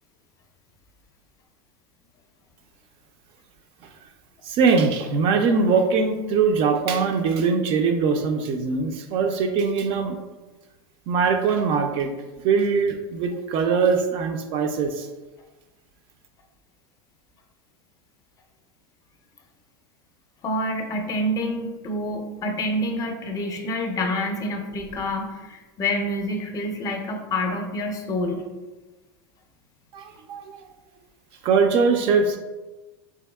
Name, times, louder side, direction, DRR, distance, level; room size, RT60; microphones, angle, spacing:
voice 1, 4.5-10.1 11.1-12.1 12.4-15.1 29.9-30.6 31.4-32.4, right 5 dB, 45° right, 5 dB, 0.4 m, -22 dB
voice 2, 20.4-28.4, left 1 dB, 25° left, 3 dB, 0.5 m, -27 dB
3.5 x 2.8 x 2.2 m, 1.2 s
supercardioid pair, 120°, 13 cm